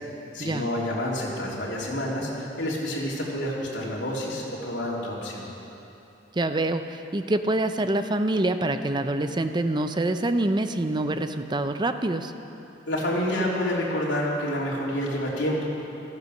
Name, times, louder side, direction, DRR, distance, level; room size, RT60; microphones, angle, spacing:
voice 1, 0.3-5.5 12.9-15.7, left 1 dB, 75° left, -4 dB, 3.3 m, -28 dB
voice 2, 6.3-12.3, right 2 dB, 25° right, 8 dB, 0.6 m, -26 dB
15.5 x 14.0 x 6.6 m, 2.9 s
head